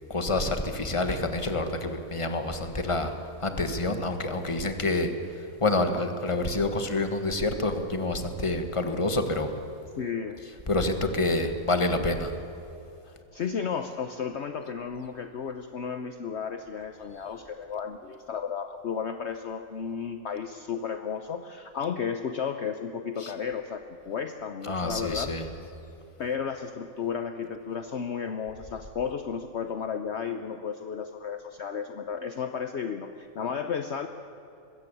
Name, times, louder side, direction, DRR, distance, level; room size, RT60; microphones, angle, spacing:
voice 1, 0.1-3.1 3.4-5.1 5.6-9.5 10.4-12.3 23.2-23.3 24.6-25.5, left 2 dB, 20° left, 7 dB, 1.5 m, -27 dB
voice 2, 10.0-10.4 13.1-25.3 26.2-34.1, left 6 dB, 55° left, 7 dB, 1.0 m, -33 dB
21.5 x 16.0 x 8.4 m, 2.7 s
omnidirectional pair, 1.5 m